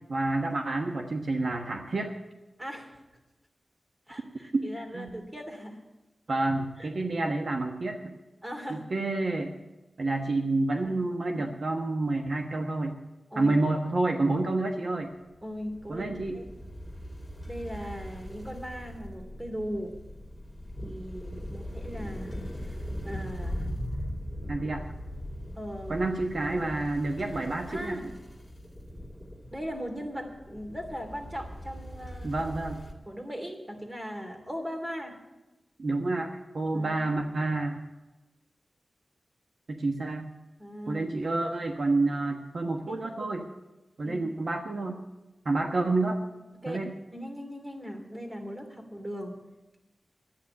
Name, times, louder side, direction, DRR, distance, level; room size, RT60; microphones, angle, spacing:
voice 1, 0.0-2.1 4.5-4.6 4.9-5.1 6.3-8.1 8.7-9.5 10.0-13.0 13.4-15.1 15.9-16.4 24.5-24.9 25.9-28.1 32.2-32.8 35.8-37.8 39.7-40.3 40.9-43.5 44.0-45.0 45.4-46.2 46.7-46.9, right 2 dB, 60° right, 3 dB, 1.2 m, -29 dB
voice 2, 2.6-3.0 4.1-5.8 6.8-6.9 8.4-8.8 10.8-11.0 11.3-11.5 13.3-13.6 15.4-16.4 17.5-19.9 20.8-23.7 24.4-24.6 25.5-26.1 26.5-26.7 27.7-28.1 29.5-32.4 33.1-35.2 36.7-37.2 40.6-41.1 42.9-43.3 44.0-44.3 46.6-46.8 47.1-49.4, equal, 20° right, 4 dB, 2.8 m, -39 dB
sound 1, 15.3-32.9, equal, 5° left, 2.6 m, -40 dB
11.5 x 9.4 x 8.3 m, 1.1 s
wide cardioid pair, 90°, 0 cm